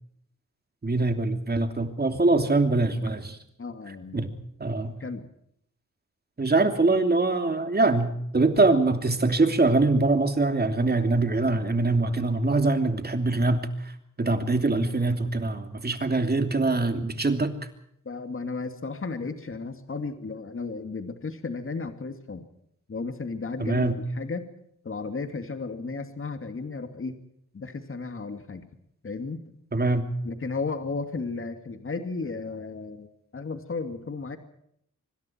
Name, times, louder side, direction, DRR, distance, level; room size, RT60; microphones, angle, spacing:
voice 1, 0.8-3.4 4.1-4.3 4.6-4.9 6.4-17.5 23.6-24.0 29.7-30.0, right 3 dB, 30° right, 7 dB, 3.0 m, -23 dB
voice 2, 3.6-4.3 5.0-5.3 15.9-16.0 18.0-22.5 22.9-24.5 24.8-27.2 27.5-28.7 29.0-29.4 30.2-33.1 33.3-34.4, left 4 dB, 45° left, 7 dB, 2.5 m, -34 dB
25.5 x 25.0 x 4.6 m, 0.72 s
wide cardioid pair, 125°, 30 cm